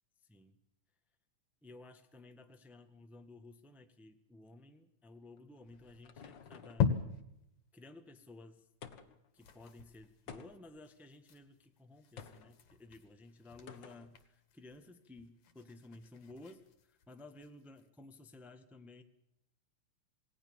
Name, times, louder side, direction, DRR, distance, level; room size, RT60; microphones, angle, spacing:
voice 1, 1.6-6.9 7.7-8.6 9.3-16.6 16.9-19.0, left 2 dB, ahead, 6 dB, 1.1 m, -55 dB
sound 1, 5.4-6.9 8.8-9.3 10.3-10.8 12.2-12.5 13.7-14.1, left 7 dB, 45° left, 1.9 m, -52 dB
Quill and Parchment, 5.6-7.5 8.0-8.1 8.4-8.5 8.8-9.0 9.2-17.9, left 7 dB, 70° left, 3.4 m, -42 dB
28.0 x 18.5 x 7.2 m, 0.82 s
omnidirectional pair, 3.4 m